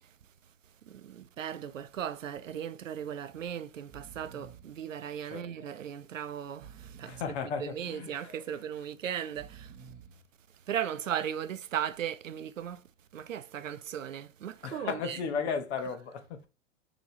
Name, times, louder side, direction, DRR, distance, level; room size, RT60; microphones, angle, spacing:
voice 1, 0.9-7.3 7.6-9.7 10.7-12.8 13.1-15.2, right 9 dB, 90° right, 0.6 m, -37 dB
Breathing, 1.7-2.0 2.3-2.4 3.3-3.5 3.8-4.8 5.4-6.0 6.5-7.5 8.1-8.7 9.2-10.2 10.8-11.4, right 6 dB, 25° right, 0.8 m, -52 dB
voice 2, 7.1-8.1 14.6-16.5, left 6 dB, 60° left, 1.1 m, -34 dB
6.2 x 3.0 x 2.7 m
hypercardioid pair, 110°, 38 cm